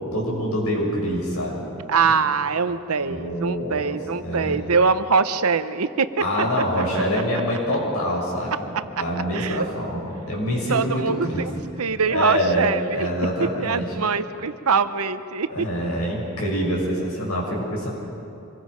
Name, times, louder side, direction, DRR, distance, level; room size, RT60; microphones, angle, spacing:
voice 1, 0.0-1.6 2.0-2.1 3.0-4.0 4.2-4.6 6.2-11.5 12.1-12.7 12.9-13.8 15.5-17.9, equal, 90° left, -3 dB, 7.2 m, -25 dB
voice 2, 1.9-6.2 6.9-7.0 9.3-9.7 10.7-11.5 11.8-13.1 13.6-15.7, right 5 dB, 90° right, 12 dB, 0.8 m, -23 dB
26.0 x 22.0 x 5.2 m, 2.7 s
head